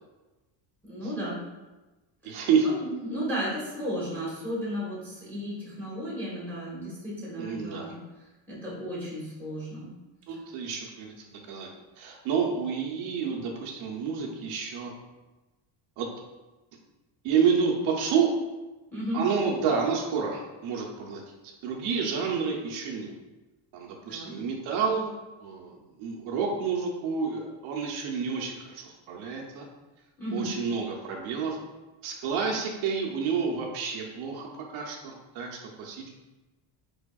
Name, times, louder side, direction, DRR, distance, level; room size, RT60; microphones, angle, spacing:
voice 1, 0.8-1.4 2.2-8.0 8.5-9.9 18.9-19.2 24.1-24.3 30.2-30.5, equal, 5° left, -8 dB, 1.0 m, -34 dB
voice 2, 2.2-2.7 7.4-7.9 10.3-11.7 12.0-14.9 16.0-16.1 17.2-18.3 19.1-21.2 21.6-23.1 23.7-25.1 25.4-29.6 30.3-31.6 32.0-36.1, right 6 dB, 70° right, 0 dB, 0.7 m, -29 dB
3.4 x 3.2 x 2.3 m, 1.1 s
cardioid pair, 155°, 50 cm